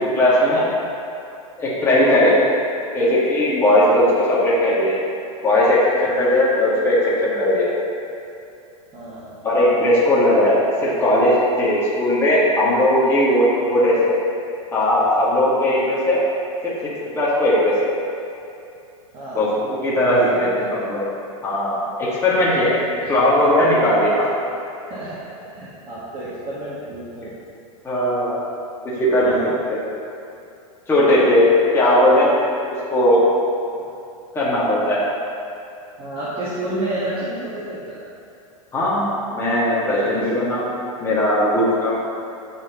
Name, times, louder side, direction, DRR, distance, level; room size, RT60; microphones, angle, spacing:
voice 1, 0.1-0.7 1.6-2.3 2.9-4.9 5.4-7.7 9.4-10.6 10.8-14.2 14.7-16.2 16.6-16.9 17.1-17.7 19.3-21.1 21.4-22.7 23.1-24.2 27.8-28.3 29.0-29.8 30.9-31.5 31.7-32.3 32.9-33.2 34.3-35.0 38.7-39.0 39.3-40.6 41.0-41.9, left 1 dB, 15° left, -8 dB, 1.6 m, -18 dB
voice 2, 6.1-6.4 8.9-9.4 19.1-19.5 20.0-20.8 22.3-22.7 23.0-23.1 24.9-25.2 25.5-27.3 28.9-29.5 33.7-33.9 36.0-38.0 39.8-40.2, right 1 dB, 30° right, -9 dB, 1.4 m, -31 dB
12.0 x 4.4 x 2.9 m, 2.6 s
hypercardioid pair, 120°, 18 cm